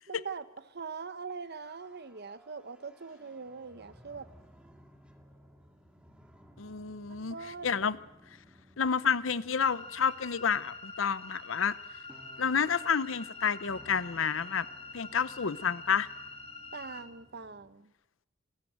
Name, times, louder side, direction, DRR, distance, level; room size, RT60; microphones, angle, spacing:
voice 1, 0.1-4.3 7.2-7.7 16.7-17.9, right 5 dB, 55° right, 1.0 m, -42 dB
sound 1, 1.3-17.7, equal, 5° right, 2.0 m, -59 dB
voice 2, 6.6-7.4 7.6-8.0 8.8-11.8 12.4-14.7 14.9-16.1, left 6 dB, 75° left, 0.8 m, -29 dB
sound 2, 9.6-17.0, left 3 dB, 30° left, 3.1 m, -46 dB
28.5 x 14.0 x 9.3 m
head